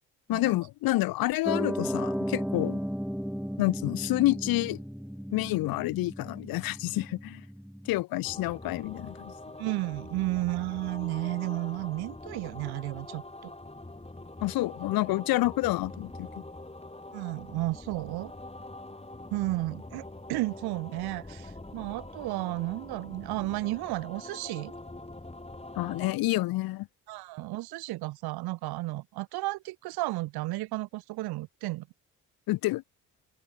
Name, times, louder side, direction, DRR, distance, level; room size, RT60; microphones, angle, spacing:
voice 1, 0.3-2.8 3.6-4.8 5.3-7.4 7.9-9.3 14.4-16.3 25.8-26.9 32.5-32.8, left 18 dB, 60° left, 0.6 m, -28 dB
Piano, 1.5-8.0, equal, ahead, 2.4 m, -35 dB
sound 1, 8.2-26.1, left 2 dB, 15° left, 7.3 m, -44 dB
voice 2, 9.6-13.5 17.1-18.3 19.3-20.0 20.3-24.7 27.1-31.9, right 19 dB, 70° right, 1.0 m, -33 dB
hypercardioid pair, 45°, 39 cm